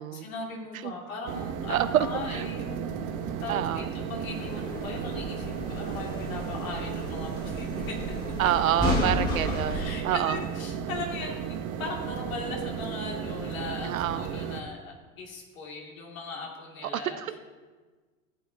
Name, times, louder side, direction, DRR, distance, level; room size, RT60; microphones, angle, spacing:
voice 1, 0.0-8.5 9.0-9.4 9.6-17.2, left 3 dB, 80° left, -1 dB, 2.5 m, -39 dB
sound 1, 1.3-14.6, right 8 dB, 45° right, 0.9 m, -35 dB
voice 2, 1.7-2.5 3.5-3.9 8.4-10.4 13.8-14.3 16.8-17.4, right 11 dB, 80° right, 12 dB, 0.7 m, -28 dB
sound 2, 4.3-9.9, left 1 dB, 25° left, 2.7 m, -33 dB
15.5 x 8.9 x 2.8 m, 1.4 s
hypercardioid pair, 85°, 41 cm